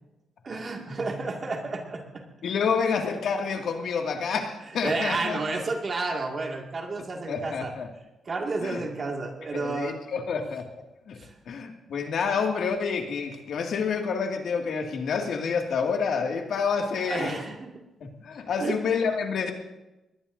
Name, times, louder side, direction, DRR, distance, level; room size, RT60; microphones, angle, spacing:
voice 1, 0.4-2.2 4.8-7.7 8.3-10.0 11.2-11.3 17.1-17.8 18.6-18.8, right 3 dB, 35° right, 1 dB, 2.1 m, -31 dB
voice 2, 2.4-5.4 7.3-7.9 8.6-8.8 9.5-10.6 11.1-11.2 11.5-17.4 18.0-19.5, left 5 dB, 65° left, 2 dB, 2.2 m, -28 dB
22.5 x 19.5 x 2.7 m, 0.98 s
wide cardioid pair, 160°, 0 cm